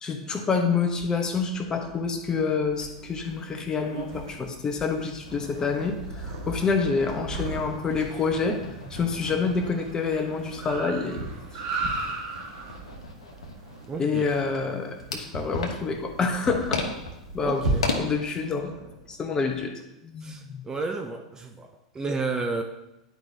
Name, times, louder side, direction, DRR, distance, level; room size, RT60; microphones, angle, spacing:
voice 1, 0.0-8.6 8.9-11.3 14.0-16.8 17.3-17.6 18.0-18.7 19.1-19.7 20.0-20.6, left 5 dB, 20° left, 4 dB, 1.0 m, -27 dB
Purr, 0.9-19.6, right 2 dB, 70° right, 1.7 m, -39 dB
sound 1, 2.7-2.9 3.2-3.3 3.6-3.7 4.3-7.4 7.6-18.0, left 3 dB, 80° left, 1.1 m, -37 dB
Car, 5.9-15.3, right 3 dB, 50° right, 1.3 m, -39 dB
voice 2, 13.9-14.2 17.4-17.9 20.2-22.6, right 3 dB, 20° right, 4 dB, 0.5 m, -32 dB
10.5 x 4.9 x 2.8 m, 0.93 s
hypercardioid pair, 90°, 3 cm